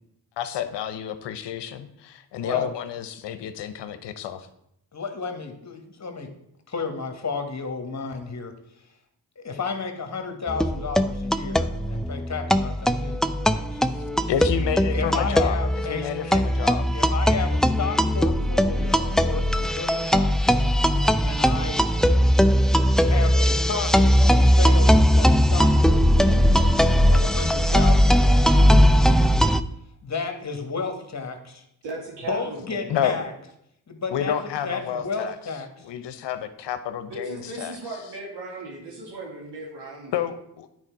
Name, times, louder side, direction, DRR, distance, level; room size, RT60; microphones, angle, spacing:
voice 1, 0.4-4.5 14.3-15.6 15.9-16.8 32.9-33.2 34.1-35.4 35.8-37.8 40.1-40.7, left 9 dB, 75° left, 11 dB, 0.9 m, -29 dB
voice 2, 4.9-6.3 6.7-8.6 9.3-13.8 14.9-16.4 16.9-20.7 21.2-22.1 23.0-26.7 27.1-29.4 30.0-31.6 32.3-33.3 33.9-34.3 34.6-35.9, left 4 dB, 40° left, 6 dB, 1.6 m, -33 dB
sound 1, 10.5-29.6, equal, ahead, 0.4 m, -19 dB
voice 3, 31.8-32.8 33.1-33.3 37.1-40.2, right 3 dB, 75° right, -3 dB, 3.1 m, -37 dB
9.8 x 4.7 x 4.7 m, 0.77 s
supercardioid pair, 50°, 42 cm